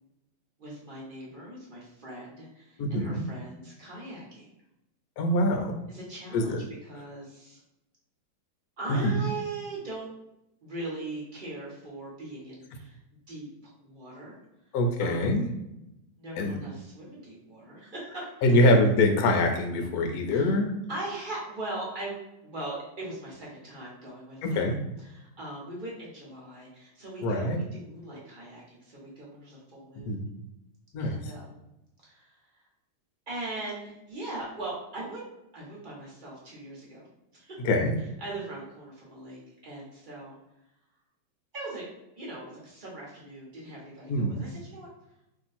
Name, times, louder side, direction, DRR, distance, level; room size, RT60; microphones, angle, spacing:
voice 1, 0.6-4.5 5.9-6.6 6.8-7.6 8.8-10.1 10.6-13.0 13.3-14.4 15.0-15.4 16.2-18.7 20.3-20.6 20.9-22.1 22.4-30.2 31.0-31.6 32.0-32.5 33.3-35.2 35.5-37.1 37.3-37.7 38.0-40.4 41.5-41.9 42.2-44.9, right 2 dB, 35° right, -5 dB, 1.0 m, -40 dB
voice 2, 2.8-3.2 5.2-5.8 6.3-6.6 8.9-9.1 14.7-15.5 16.4-16.6 18.4-20.7 24.4-24.7 27.2-27.6 30.0-30.3 30.9-31.2 37.6-37.9 44.1-44.4, left 1 dB, 65° left, 4 dB, 1.0 m, -24 dB
3.0 x 2.8 x 4.1 m, 0.87 s
omnidirectional pair, 2.1 m